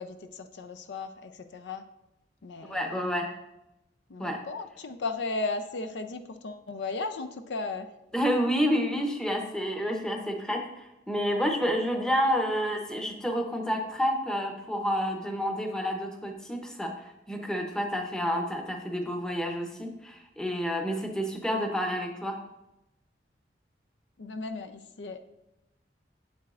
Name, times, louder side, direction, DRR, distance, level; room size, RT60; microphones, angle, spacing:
voice 1, 0.0-1.8 2.4-2.8 4.1-7.9 24.2-25.2, left 3 dB, 70° left, 7 dB, 0.5 m, -35 dB
voice 2, 2.6-3.3 4.2-4.4 8.1-22.4, equal, 5° left, 2 dB, 0.7 m, -29 dB
7.6 x 7.2 x 2.5 m, 0.90 s
head